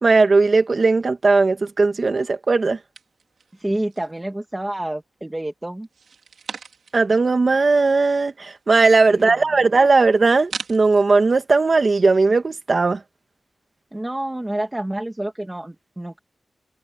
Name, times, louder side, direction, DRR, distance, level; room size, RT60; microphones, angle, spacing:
voice 1, 0.0-2.8 6.9-13.0, right 3 dB, 40° right, 2.0 m, -17 dB
sound 1, 2.9-4.2 4.6-5.3 5.8-7.1 7.5-7.6 7.7-11.0, right 5 dB, 80° right, 4.9 m, -40 dB
voice 2, 3.5-5.9 9.1-9.4 13.9-16.2, right 1 dB, 10° right, 2.6 m, -28 dB
wide cardioid pair, 140°, 0 cm